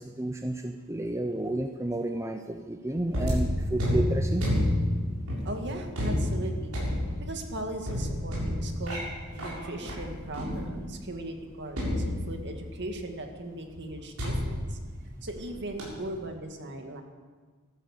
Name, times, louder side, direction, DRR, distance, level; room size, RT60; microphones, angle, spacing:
voice 1, 0.0-4.4, right 1 dB, 15° right, 6 dB, 0.6 m, -31 dB
sound 1, 3.1-11.0 11.8-12.8 14.2-15.5 15.8-16.1, left 1 dB, 85° right, 7.1 m, -30 dB
voice 2, 5.4-6.7 7.2-14.8 15.2-17.0, right 1 dB, 50° right, 4 dB, 2.1 m, -38 dB
15.5 x 13.5 x 6.7 m, 1.4 s
head